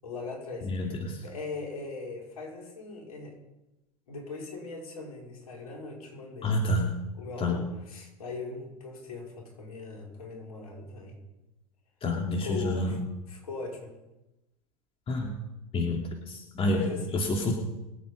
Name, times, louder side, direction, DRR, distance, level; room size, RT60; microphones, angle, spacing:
voice 1, 0.0-0.9 1.2-3.4 4.1-6.6 6.8-11.2 12.4-13.0 13.3-14.0 16.7-17.1, left 3 dB, 75° left, -1 dB, 5.3 m, -40 dB
voice 2, 0.6-1.2 6.4-6.9 7.4-7.6 12.0-12.9 15.1-15.3 15.7-16.0 16.3-16.8 17.1-17.5, left 2 dB, 30° left, 2 dB, 2.8 m, -28 dB
23.5 x 8.5 x 5.2 m, 0.96 s
hypercardioid pair, 90°, 19 cm